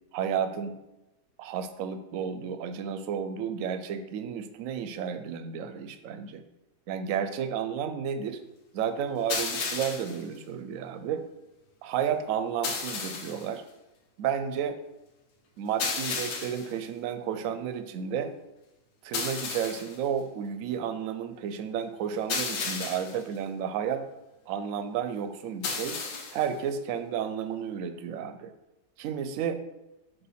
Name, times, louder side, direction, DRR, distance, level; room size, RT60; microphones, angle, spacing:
voice 1, 0.1-0.8 1.4-6.4 6.9-8.4 8.7-11.2 11.8-13.6 14.2-14.8 15.6-18.3 19.0-24.0 24.5-26.0 26.3-28.5 29.0-29.6, right 8 dB, 65° right, 8 dB, 0.8 m, -32 dB
sound 1, 9.3-10.2 12.6-13.5 15.8-16.7 19.1-20.0 22.3-23.2 25.6-26.5, left 4 dB, 85° left, 1.6 m, -33 dB
7.9 x 2.7 x 5.6 m, 0.96 s
omnidirectional pair, 1.8 m